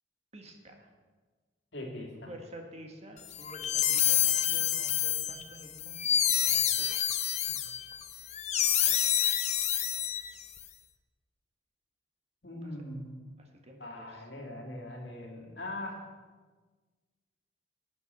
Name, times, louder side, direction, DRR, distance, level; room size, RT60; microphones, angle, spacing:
voice 1, 0.3-0.9 2.2-6.0 6.2-6.9 7.5-7.7 12.6-12.7 13.4-14.2, right 1 dB, 35° right, 3 dB, 1.6 m, -50 dB
voice 2, 1.7-2.3 12.4-13.2 13.8-16.0, left 1 dB, 65° left, 0 dB, 2.4 m, -41 dB
sound 1, 3.3-10.6, left 10 dB, 35° left, 0.6 m, -28 dB
11.5 x 9.8 x 5.6 m, 1.4 s
head